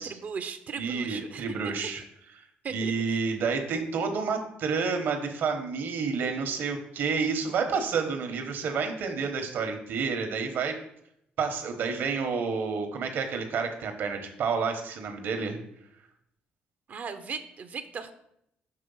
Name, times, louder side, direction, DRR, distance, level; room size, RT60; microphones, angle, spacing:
voice 1, 0.0-1.7 2.6-2.9 16.9-18.1, right 6 dB, 50° right, 9 dB, 0.6 m, -37 dB
voice 2, 0.8-2.0 2.7-10.8 11.4-15.6, right 5 dB, 65° right, 5 dB, 1.1 m, -29 dB
6.7 x 3.3 x 5.4 m, 0.77 s
cardioid pair, 95°, 4 cm